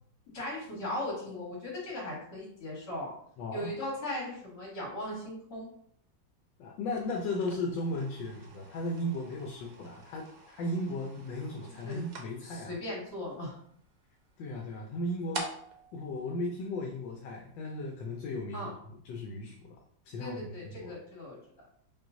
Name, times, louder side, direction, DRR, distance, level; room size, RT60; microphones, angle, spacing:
voice 1, 0.3-3.1 3.5-5.7 11.8-12.0 12.4-13.6 18.5-18.7 20.2-21.4, left 1 dB, 65° left, -5 dB, 2.4 m, -38 dB
voice 2, 3.4-3.7 6.6-12.8 14.4-15.5 15.9-18.7 19.0-19.6 20.0-20.4 20.6-20.9, left 1 dB, 80° left, 0 dB, 1.3 m, -36 dB
sound 1, 6.9-17.2, right 3 dB, 60° right, 1.0 m, -48 dB
5.8 x 2.5 x 2.6 m, 0.65 s
omnidirectional pair, 2.0 m